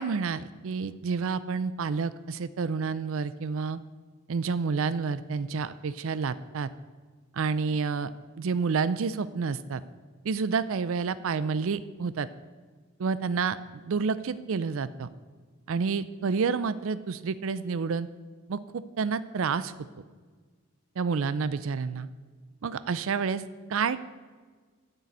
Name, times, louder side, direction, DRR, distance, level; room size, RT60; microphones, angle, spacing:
voice 1, 0.0-3.8 4.3-6.7 7.3-8.1 8.4-9.8 10.2-12.3 13.0-15.1 15.7-18.1 18.5-19.7 21.0-22.1 22.6-23.4 23.7-24.0, right 5 dB, 65° right, 15 dB, 0.4 m, -29 dB
10.0 x 6.8 x 8.4 m, 1.5 s
head